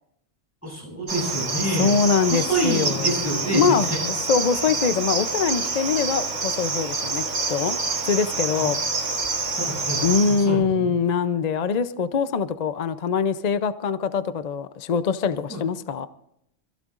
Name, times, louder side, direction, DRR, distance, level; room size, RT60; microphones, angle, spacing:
voice 1, 0.6-1.9 2.3-3.6 8.6-8.7 9.6-10.9 15.5-15.6, right 1 dB, 10° left, 7.8 m, -27 dB
Cricket, 1.1-10.5, right 3 dB, 85° right, 2.0 m, -27 dB
voice 2, 1.8-3.2 3.5-7.8 8.0-8.8 10.0-16.1, left 5 dB, 45° left, 0.6 m, -23 dB
26.5 x 15.5 x 2.5 m
omnidirectional pair, 1.2 m